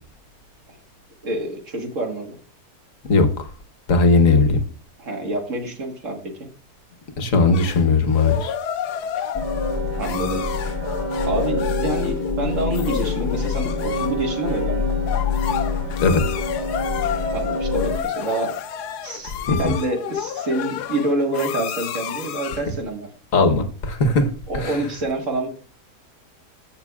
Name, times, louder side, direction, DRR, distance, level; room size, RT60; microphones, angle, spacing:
voice 1, 1.2-2.4 5.0-6.5 9.1-9.2 10.0-10.5 11.2-14.9 17.3-18.6 19.0-23.1 24.5-25.5, right 2 dB, 55° right, 1.8 m, -27 dB
voice 2, 3.9-4.6 7.2-8.5 16.0-16.2 19.5-19.6 23.3-24.3 24.5-24.7, left 3 dB, 60° left, 1.4 m, -17 dB
sound 1, 7.5-22.7, left 9 dB, 90° left, 1.2 m, -30 dB
sound 2, 9.3-18.0, left 3 dB, 20° left, 0.9 m, -25 dB
14.5 x 5.9 x 2.4 m
omnidirectional pair, 1.6 m